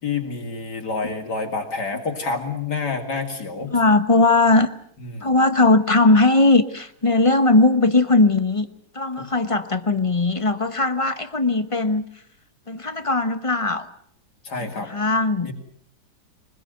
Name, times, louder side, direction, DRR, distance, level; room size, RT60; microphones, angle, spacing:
voice 1, 0.0-3.7 5.0-5.3 9.2-9.3 14.4-14.9 15.4-15.5, left 4 dB, 60° left, 3 dB, 3.2 m, -28 dB
voice 2, 3.7-4.7 5.2-8.7 8.9-12.0 12.7-13.9 14.9-15.5, left 2 dB, 25° left, 11 dB, 0.7 m, -18 dB
24.0 x 20.5 x 7.9 m, 0.64 s
omnidirectional pair, 2.0 m